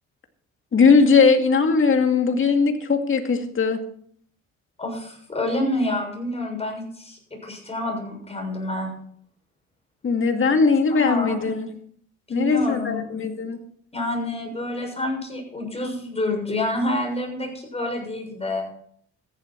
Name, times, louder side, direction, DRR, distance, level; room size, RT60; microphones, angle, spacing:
voice 1, 0.7-3.8 10.0-11.7 12.3-13.6, left 5 dB, 45° left, 5 dB, 2.2 m, -19 dB
voice 2, 4.8-8.9 10.9-11.3 12.3-13.0 13.9-18.6, left 1 dB, 20° left, 1 dB, 7.0 m, -28 dB
14.0 x 11.0 x 4.6 m, 0.62 s
cardioid pair, 90°, 30 cm